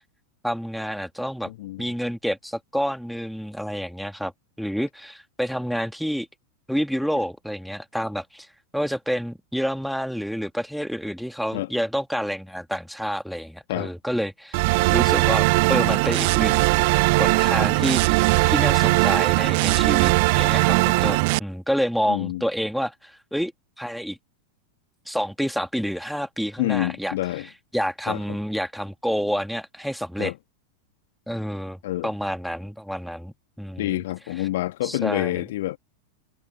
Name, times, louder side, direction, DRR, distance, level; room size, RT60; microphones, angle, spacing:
voice 1, 0.4-1.5 1.8-4.3 4.6-6.3 6.7-8.5 8.7-14.6 14.9-16.7 17.2-23.5 23.8-24.2 25.1-27.1 27.4-30.3 31.3-34.0 34.4-34.5 34.8-35.4, equal, ahead, 2.7 m, -28 dB
voice 2, 1.5-1.9 11.5-11.7 13.7-13.9 22.1-22.4 26.6-27.5 28.1-28.2 30.2-30.3 31.8-32.1 33.8-35.8, left 16 dB, 55° left, 1.8 m, -27 dB
sound 1, 14.5-21.4, right 28 dB, 45° right, 0.8 m, -19 dB
figure-of-eight pair, 90°, 0 cm